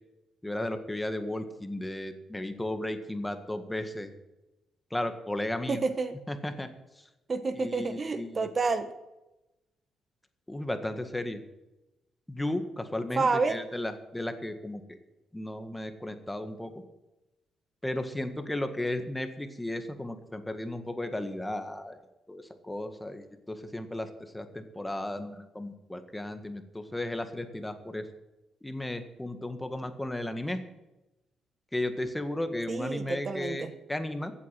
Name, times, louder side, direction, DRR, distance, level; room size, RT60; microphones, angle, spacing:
voice 1, 0.4-4.1 4.9-5.8 6.3-6.7 7.0-7.1 7.6-8.5 10.5-11.4 12.3-15.0 15.3-16.7 17.8-22.0 22.3-28.1 28.6-30.6 31.7-34.3, left 1 dB, 10° left, 8 dB, 1.7 m, -34 dB
voice 2, 5.7-6.1 7.3-8.9 13.2-13.6 32.7-33.7, right 4 dB, 35° right, 9 dB, 1.1 m, -29 dB
15.0 x 8.6 x 7.7 m, 0.97 s
cardioid pair, 90°, 0 cm